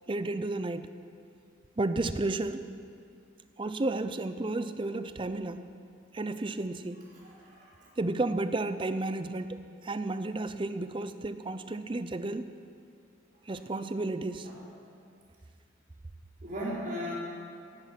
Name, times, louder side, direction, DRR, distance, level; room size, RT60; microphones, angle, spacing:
voice 1, 0.1-0.9 1.8-2.7 3.6-5.7 6.1-7.1 8.0-12.5 13.5-14.5, right 2 dB, 25° right, 11 dB, 0.5 m, -32 dB
voice 2, 7.2-7.8 13.5-13.6 14.4-14.6 16.4-17.1, equal, 45° right, -7 dB, 4.5 m, -37 dB
16.5 x 10.5 x 5.8 m, 2.4 s
head